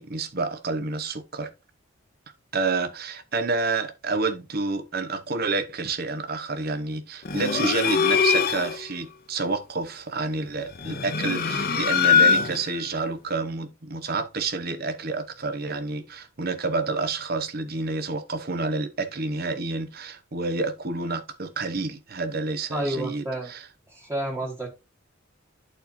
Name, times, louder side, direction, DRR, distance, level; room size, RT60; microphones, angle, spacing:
voice 1, 0.0-1.5 2.5-23.6, right 3 dB, 50° right, 1.0 m, -29 dB
sound 1, 7.2-8.8 10.7-12.8, left 6 dB, 45° left, 0.8 m, -22 dB
voice 2, 22.7-23.5 23.9-24.7, right 1 dB, 10° right, 1.5 m, -30 dB
11.0 x 4.3 x 2.7 m
head